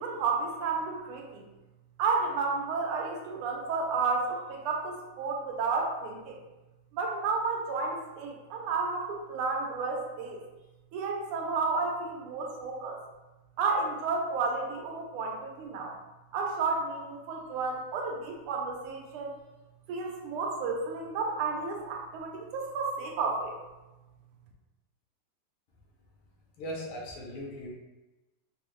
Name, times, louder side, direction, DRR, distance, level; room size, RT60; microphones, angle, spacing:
voice 1, 0.0-1.4 2.0-6.4 6.9-10.4 10.9-13.0 13.6-15.9 16.3-19.3 19.9-23.6, right 4 dB, 85° right, 1 dB, 1.5 m, -31 dB
voice 2, 26.6-27.7, equal, 75° left, -3 dB, 1.6 m, -38 dB
4.8 x 2.0 x 3.0 m, 1.1 s
omnidirectional pair, 2.4 m